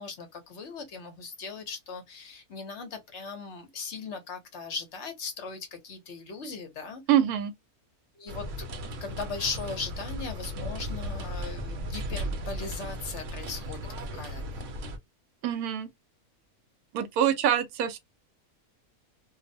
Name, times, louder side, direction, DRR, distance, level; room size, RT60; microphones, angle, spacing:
voice 1, 0.0-7.0 8.2-8.7 9.0-14.7, left 4 dB, 60° left, 0.9 m, -38 dB
voice 2, 7.1-7.5 15.4-15.9 16.9-18.0, right 10 dB, 85° right, 1.1 m, -25 dB
sound 1, 8.3-15.0, equal, 65° right, 0.9 m, -36 dB
2.6 x 2.0 x 2.5 m
omnidirectional pair, 1.6 m